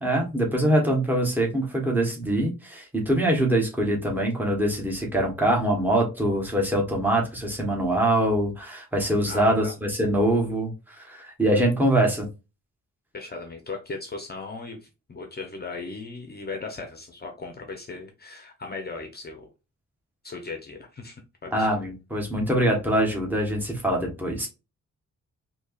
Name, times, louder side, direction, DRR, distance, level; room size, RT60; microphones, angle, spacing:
voice 1, 0.0-12.3 21.5-24.5, right 1 dB, 5° right, 1.1 m, -24 dB
voice 2, 9.2-9.7 13.1-19.5 20.2-21.7, left 3 dB, 30° left, 0.7 m, -37 dB
4.4 x 2.9 x 2.4 m
wide cardioid pair, 170°, 31 cm